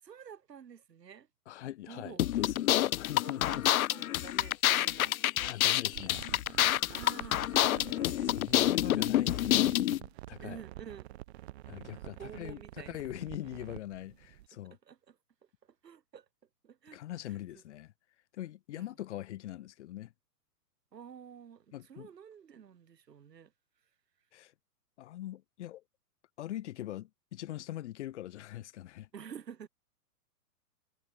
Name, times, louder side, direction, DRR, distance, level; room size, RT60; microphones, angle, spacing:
voice 1, 0.0-1.3 1.9-2.2 3.2-5.9 6.6-8.3 10.4-11.1 12.2-13.0 14.8-15.2 15.6-16.3 16.6-17.0 17.3-17.4 18.8-18.9 20.9-23.5 29.1-29.7, right 8 dB, 85° right, 6.0 m, -50 dB
voice 2, 1.5-2.7 3.0-3.7 5.4-6.3 8.2-10.6 11.7-14.8 16.9-17.9 18.3-20.1 21.7-22.1 24.3-24.5 25.0-25.8 26.4-29.1, left 14 dB, 45° left, 3.1 m, -42 dB
sound 1, 2.2-10.0, left 13 dB, 60° left, 0.6 m, -28 dB
sound 2, 5.9-14.5, right 16 dB, 40° right, 4.7 m, -48 dB
hypercardioid pair, 160°, 48 cm